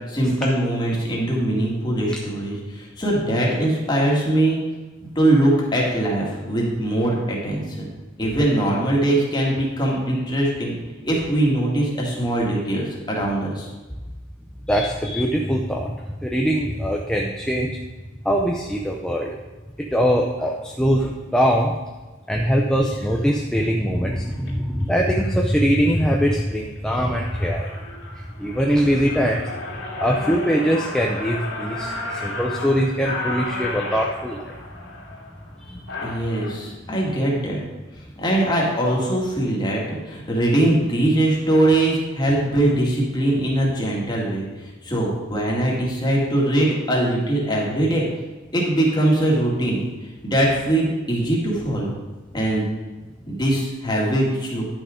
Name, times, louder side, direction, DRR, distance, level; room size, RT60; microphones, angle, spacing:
voice 1, 0.0-4.6 5.2-7.9 8.2-10.7 11.0-13.7 36.0-37.6 38.2-48.1 48.5-49.8 50.2-51.9 52.3-52.6 53.3-54.6, right 1 dB, 20° left, -3 dB, 2.1 m, -21 dB
voice 2, 14.7-15.9 16.2-17.8 18.2-19.3 19.9-21.7 22.3-29.5 30.0-34.6 35.6-35.9, equal, 5° left, 0 dB, 0.6 m, -22 dB
sound 1, 24.3-24.5 25.1-25.4 25.9-26.3 26.8-26.9 27.1-36.5, left 2 dB, 80° left, 2.2 m, -33 dB
10.5 x 6.2 x 5.1 m, 1.2 s
head